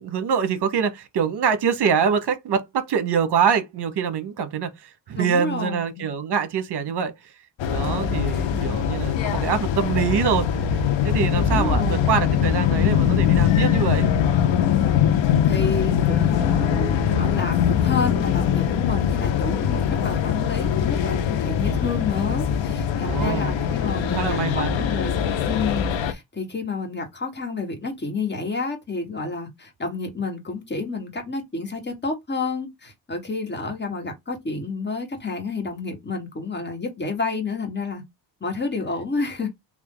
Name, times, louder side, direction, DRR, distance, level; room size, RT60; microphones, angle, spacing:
voice 1, 0.0-4.7 5.1-7.1 7.7-10.5 11.0-14.1 23.0-23.5 23.9-24.8, right 7 dB, 60° right, 0.9 m, -24 dB
voice 2, 5.1-6.1 8.3-8.8 11.3-12.2 15.4-25.2 25.4-38.0 38.4-39.5, left 4 dB, 25° left, 1.5 m, -30 dB
sound 1, 7.6-26.1, left 8 dB, 70° left, 0.7 m, -22 dB
3.4 x 2.5 x 3.7 m
cardioid pair, 110°, 47 cm